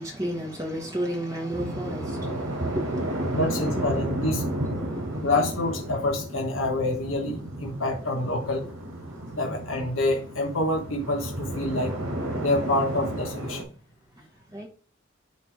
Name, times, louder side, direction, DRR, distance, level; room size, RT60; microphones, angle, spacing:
voice 1, 0.0-3.5 4.8-5.3 14.2-14.3 14.5-14.7, right 1 dB, 15° right, 1.2 m, -33 dB
sound 1, 1.5-13.6, right 1 dB, 85° right, 3.6 m, -32 dB
voice 2, 3.3-4.4 5.1-8.6 9.3-11.9 12.4-13.6, left 2 dB, 85° left, 1.2 m, -27 dB
9.6 x 3.4 x 4.8 m
head